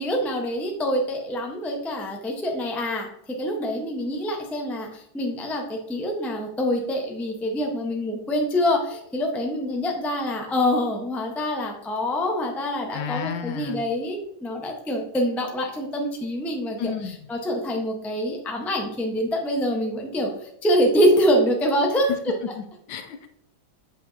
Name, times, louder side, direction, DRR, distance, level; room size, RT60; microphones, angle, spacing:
voice 1, 0.0-3.1 3.4-16.9 17.3-20.3 20.6-22.3, equal, ahead, 0 dB, 0.4 m, -25 dB
voice 2, 12.9-13.8 16.8-17.3 22.6-23.3, left 8 dB, 75° left, 7 dB, 1.2 m, -32 dB
7.6 x 5.6 x 2.7 m, 0.72 s
omnidirectional pair, 2.2 m